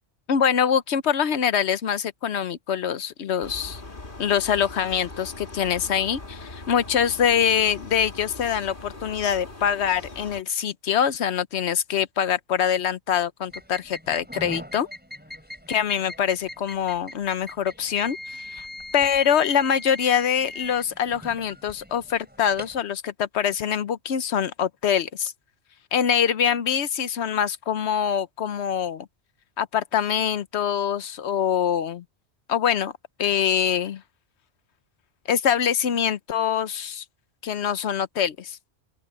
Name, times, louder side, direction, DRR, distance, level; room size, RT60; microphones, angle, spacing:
voice 1, 0.3-3.8 4.2-14.9 15.7-18.6 18.9-25.3 25.9-29.1 29.6-32.0 32.5-32.9 33.2-34.0 35.3-37.0 37.4-38.6, left 8 dB, 75° left, 1.1 m, -24 dB
sound 1, 3.4-10.4, left 2 dB, 50° left, 2.7 m, -41 dB
sound 2, 13.5-22.8, left 1 dB, 10° right, 4.9 m, -41 dB
open air
omnidirectional pair, 1.1 m